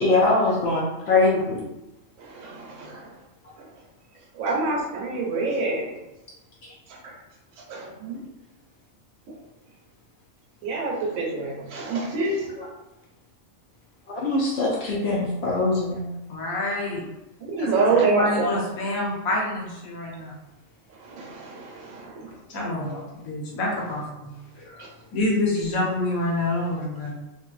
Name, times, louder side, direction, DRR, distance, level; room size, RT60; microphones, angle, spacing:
voice 1, 0.0-1.6 12.6-12.7 14.1-16.0 22.7-23.0 24.7-24.8, left 2 dB, 65° left, -4 dB, 0.7 m, -23 dB
voice 2, 2.2-3.1 3.6-3.7 4.3-5.9 6.9-7.1 7.7-8.2 9.3-9.4 10.6-12.5 14.2-14.3 17.4-18.6 21.0-22.3, right 3 dB, 70° right, -1 dB, 1.0 m, -26 dB
voice 3, 16.3-17.0 17.6-20.3 22.5-24.3 25.1-27.1, left 2 dB, 80° left, -3 dB, 1.1 m, -27 dB
2.7 x 2.5 x 2.4 m, 0.98 s
omnidirectional pair, 1.5 m